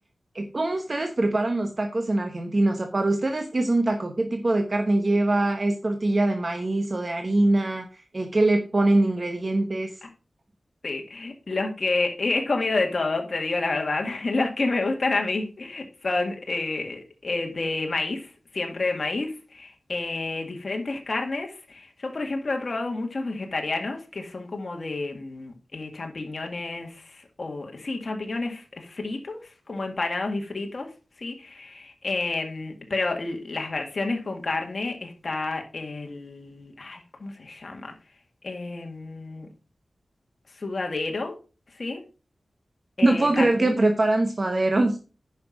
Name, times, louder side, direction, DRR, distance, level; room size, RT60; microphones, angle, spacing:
voice 1, 0.3-7.9 8.1-9.9 43.0-45.0, right 2 dB, 40° right, 5 dB, 1.1 m, -23 dB
voice 2, 10.8-30.9 31.2-37.9 38.4-39.5 40.5-41.4 41.7-42.0 43.0-43.8, left 3 dB, 55° left, 3 dB, 1.8 m, -29 dB
9.4 x 5.9 x 4.9 m, 0.35 s
wide cardioid pair, 85°, 0 cm